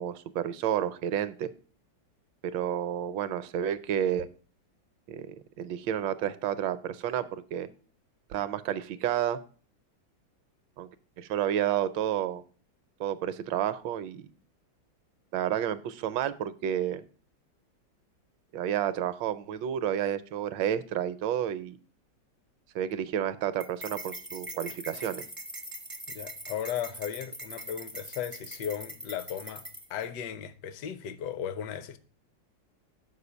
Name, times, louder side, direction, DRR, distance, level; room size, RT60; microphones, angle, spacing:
voice 1, 0.0-1.5 2.5-4.3 5.1-7.7 8.3-9.4 10.8-10.9 11.2-12.4 13.0-14.3 15.3-17.0 18.5-21.8 22.7-25.2, right 10 dB, 75° right, 1.2 m, -30 dB
sound 1, 23.6-30.0, right 1 dB, 15° right, 0.4 m, -42 dB
voice 2, 26.1-29.6 29.9-32.0, left 9 dB, 65° left, 1.2 m, -36 dB
6.7 x 4.7 x 6.9 m
omnidirectional pair, 2.2 m